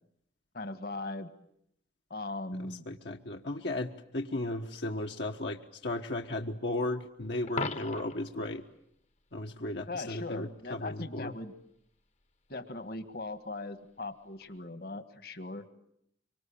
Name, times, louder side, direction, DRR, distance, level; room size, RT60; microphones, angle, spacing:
voice 1, 0.5-1.3 2.1-2.8 9.9-11.5 12.5-15.7, left 2 dB, 55° left, 11 dB, 1.6 m, -39 dB
voice 2, 2.6-8.6 9.3-11.3, left 2 dB, 70° left, 2 dB, 1.4 m, -35 dB
Coin (dropping), 7.5-8.3 14.4-14.6, left 3 dB, 35° left, 1.0 m, -37 dB
25.0 x 24.5 x 8.7 m, 0.72 s
head